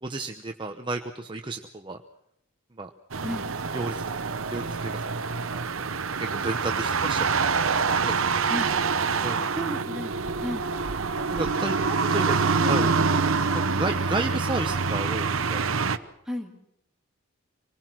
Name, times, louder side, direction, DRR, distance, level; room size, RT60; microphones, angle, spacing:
voice 1, 0.0-2.0 2.8-2.9 3.7-4.0 4.5-4.7 5.1-5.5 6.2-7.5 8.0-8.3 9.2-9.5 11.3-11.8 12.1-12.9 13.7-15.6, right 2 dB, 20° right, 4 dB, 0.9 m, -32 dB
sound 1, 3.1-16.0, right 4 dB, 65° right, 1.0 m, -26 dB
voice 2, 9.5-10.7 11.1-11.3 11.9-12.1 12.4-13.0 16.3-16.5, equal, ahead, 0 dB, 2.6 m, -34 dB
26.0 x 20.0 x 6.1 m, 0.76 s
head